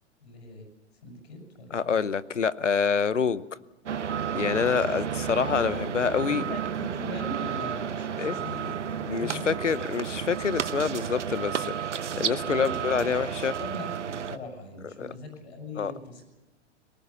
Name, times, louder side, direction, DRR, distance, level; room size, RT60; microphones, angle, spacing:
voice 1, 0.2-0.7 1.0-2.0 5.6-5.9 6.2-9.7 12.4-13.1 13.6-16.2, left 1 dB, 65° left, 1 dB, 6.9 m, -40 dB
voice 2, 1.7-3.4 4.3-6.4 8.2-8.4 9.1-13.6 15.0-15.1 15.8-15.9, left 6 dB, 85° left, 18 dB, 0.9 m, -27 dB
sound 1, 3.9-14.4, right 8 dB, 75° right, 1.0 m, -32 dB
23.0 x 19.0 x 7.1 m, 1.1 s
figure-of-eight pair, 105°, 36 cm